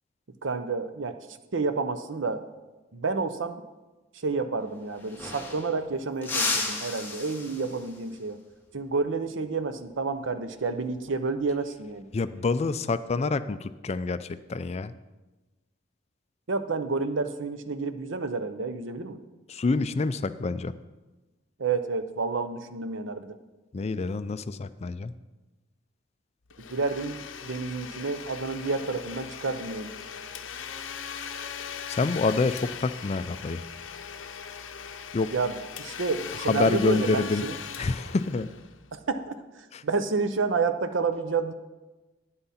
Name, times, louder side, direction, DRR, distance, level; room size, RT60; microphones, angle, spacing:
voice 1, 0.4-1.2 1.5-2.5 2.9-3.6 4.1-8.4 8.7-12.1 16.5-19.2 21.6-23.4 26.7-29.9 35.3-37.6 38.9-41.5, right 4 dB, 70° right, 10 dB, 0.7 m, -30 dB
sound 1, 4.6-4.7 4.9-5.8 6.2-8.0 10.5-10.8 12.2-12.7, left 3 dB, 10° left, 1.5 m, -33 dB
voice 2, 12.1-14.9 19.5-20.7 23.7-25.1 31.9-33.6 35.1-35.3 36.4-37.4 37.8-38.5 39.7-39.8, left 3 dB, 35° left, 13 dB, 0.4 m, -27 dB
Domestic sounds home sounds, 26.5-39.1, left 7 dB, 75° left, 0.7 m, -40 dB
11.5 x 9.8 x 4.2 m, 1.1 s
head